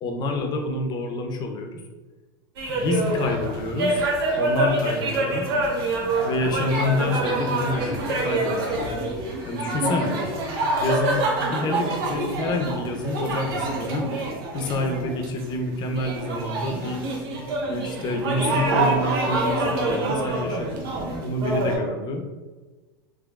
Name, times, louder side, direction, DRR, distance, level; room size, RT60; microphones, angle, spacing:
voice 1, 0.0-1.8 2.7-4.0 4.4-5.5 6.2-9.1 9.4-10.2 10.8-14.1 14.5-17.1 17.7-20.9 21.2-22.2, left 2 dB, 35° left, 4 dB, 0.6 m, -28 dB
sound 1, 2.6-21.8, right 2 dB, 70° right, 0.9 m, -26 dB
3.6 x 3.3 x 2.3 m, 1.3 s
hypercardioid pair, 110°, 13 cm